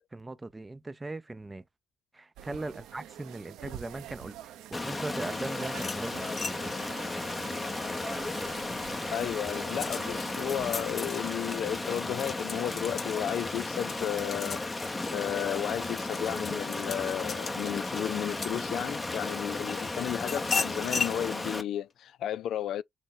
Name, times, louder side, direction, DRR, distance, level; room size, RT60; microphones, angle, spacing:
voice 1, 0.1-1.6 2.2-4.5 4.8-6.1 6.4-6.6, right 2 dB, 20° right, 0.5 m, -39 dB
sound 1, 2.4-10.9, right 11 dB, 90° right, 0.6 m, -46 dB
Stream, 4.7-21.6, left 2 dB, 20° left, 0.8 m, -34 dB
sound 2, 5.7-8.5 9.0-19.1 19.7-21.2, left 5 dB, 45° left, 1.5 m, -37 dB
voice 2, 9.1-14.7 15.1-22.8, left 11 dB, 75° left, 0.3 m, -33 dB
6.2 x 2.2 x 3.9 m
cardioid pair, 90°, 0 cm